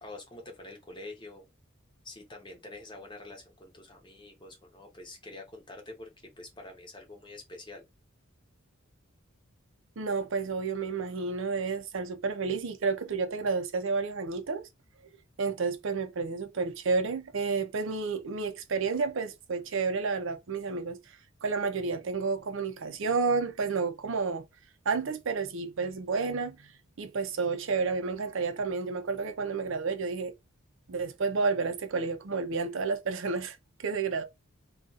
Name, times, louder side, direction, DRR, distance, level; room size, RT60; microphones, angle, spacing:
voice 1, 0.0-1.5 2.0-7.8, left 2 dB, 20° left, 0.8 m, -46 dB
voice 2, 10.0-14.7 15.4-21.0 21.4-24.4 24.9-26.7 27.0-30.3 30.9-34.2, right 4 dB, 65° right, 0.5 m, -30 dB
2.4 x 2.3 x 3.9 m
head